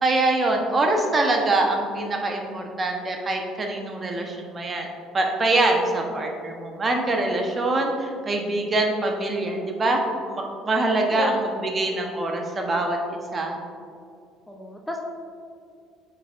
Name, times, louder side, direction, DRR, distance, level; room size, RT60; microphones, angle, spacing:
voice 1, 0.0-4.9 5.1-13.6, right 2 dB, 30° right, 2 dB, 1.0 m, -24 dB
voice 2, 6.1-6.5 11.1-11.4 14.5-15.0, left 2 dB, 5° left, 1 dB, 0.8 m, -33 dB
8.9 x 5.7 x 2.6 m, 2.4 s
figure-of-eight pair, 55°, 0 cm